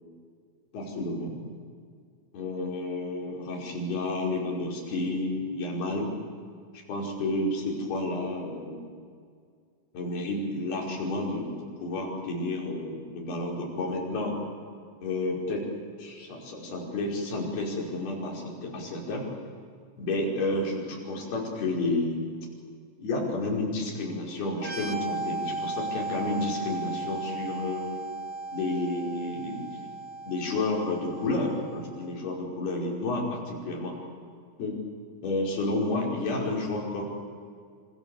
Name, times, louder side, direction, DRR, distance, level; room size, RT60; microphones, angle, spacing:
voice 1, 0.7-1.4 2.3-6.1 6.9-8.9 9.9-14.3 15.0-15.7 16.0-19.3 20.0-22.3 23.0-27.8 28.5-29.7 30.3-33.9 34.6-34.8 35.2-37.0, left 2 dB, 50° left, -2 dB, 7.1 m, -31 dB
sound 1, 24.6-32.1, right 3 dB, 45° right, 2.5 m, -36 dB
28.0 x 26.5 x 7.2 m, 2.1 s
omnidirectional pair, 5.7 m